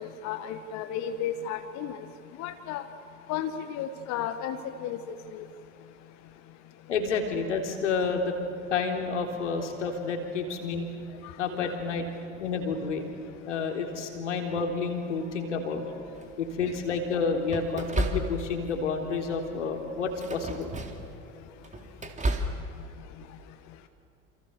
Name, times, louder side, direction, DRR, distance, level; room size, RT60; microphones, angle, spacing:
voice 1, 0.0-2.0 2.4-2.9 3.3-5.5 11.2-11.7, left 9 dB, 50° left, 9 dB, 1.5 m, -34 dB
voice 2, 6.9-8.3 8.7-10.9 11.4-13.0 13.5-15.8 16.4-20.7, left 4 dB, 75° left, 3 dB, 3.9 m, -30 dB
sound 1, 16.1-16.6 17.5-18.7 19.1-19.4 20.1-21.1 21.5-22.6, right 1 dB, 20° right, 3.5 m, -32 dB
29.0 x 28.5 x 6.9 m, 3.0 s
figure-of-eight pair, 70°, 36 cm